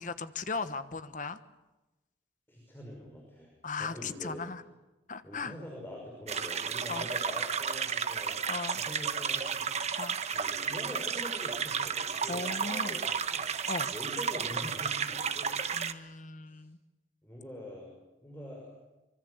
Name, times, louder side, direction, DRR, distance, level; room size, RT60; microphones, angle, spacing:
voice 1, 0.0-1.4 3.6-4.6 5.1-5.5 6.9-7.1 8.5-8.8 10.0-10.2 12.3-13.0 13.7-13.9 15.7-16.8, left 4 dB, 45° left, 11 dB, 1.2 m, -37 dB
voice 2, 2.5-3.5 3.8-4.4 5.2-8.4 8.8-9.7 10.3-13.5 13.9-15.6 16.5-16.6 17.2-17.9 18.2-18.8, equal, 15° left, -1 dB, 5.8 m, -44 dB
sound 1, 6.3-15.9, right 6 dB, 40° right, 1.1 m, -33 dB
25.0 x 24.0 x 8.1 m, 1.0 s
head